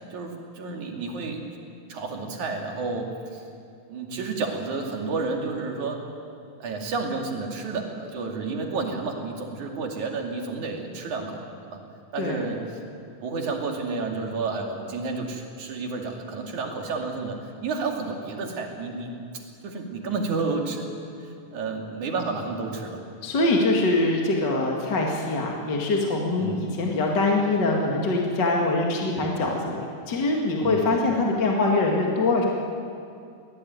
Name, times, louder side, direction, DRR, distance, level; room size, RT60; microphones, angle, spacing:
voice 1, 0.1-1.4 1.9-3.4 3.9-6.1 6.6-11.4 11.7-11.8 12.1-12.6 13.2-19.1 19.6-20.8 21.2-23.0 26.4-26.7 30.6-31.0, right 4 dB, 65° right, 1 dB, 3.9 m, -31 dB
voice 2, 23.2-32.4, left 2 dB, 35° left, -1 dB, 2.3 m, -23 dB
23.5 x 18.0 x 9.4 m, 2.5 s
omnidirectional pair, 3.7 m